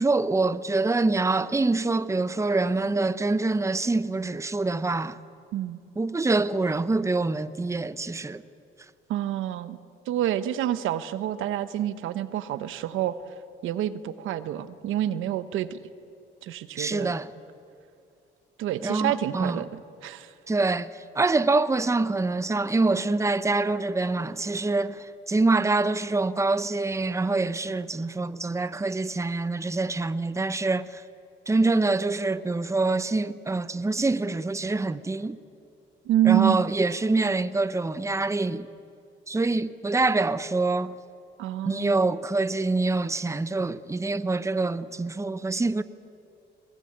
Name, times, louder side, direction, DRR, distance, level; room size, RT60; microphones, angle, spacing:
voice 1, 0.0-5.2 6.0-8.4 16.8-17.3 18.8-19.6 20.5-31.0 31.5-35.4 36.2-38.7 39.3-40.9 41.6-45.8, right 3 dB, 15° right, 0.9 m, -25 dB
voice 2, 9.1-9.8 10.1-13.2 13.6-15.8 16.4-17.1 18.6-20.3 36.0-36.6 41.4-41.9, right 12 dB, 90° right, 1.1 m, -27 dB
21.5 x 21.0 x 8.8 m
cardioid pair, 90°, 20 cm